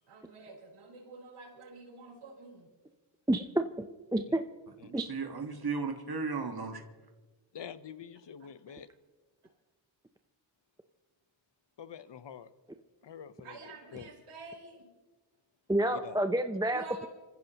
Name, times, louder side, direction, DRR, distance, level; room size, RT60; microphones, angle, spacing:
voice 1, 0.1-2.7 13.4-14.9 16.7-17.1, right 3 dB, 85° right, -4 dB, 4.5 m, -48 dB
voice 2, 3.3-3.7 4.1-4.4 4.9-5.1 15.7-17.1, right 1 dB, 10° right, 7 dB, 0.6 m, -29 dB
voice 3, 4.8-6.8, right 4 dB, 45° right, 4 dB, 1.6 m, -35 dB
voice 4, 7.5-8.9 11.8-12.5 13.0-13.6 13.9-14.1 15.9-16.2, left 8 dB, 60° left, 13 dB, 1.0 m, -46 dB
26.0 x 15.0 x 3.0 m, 1.3 s
cardioid pair, 65°, 49 cm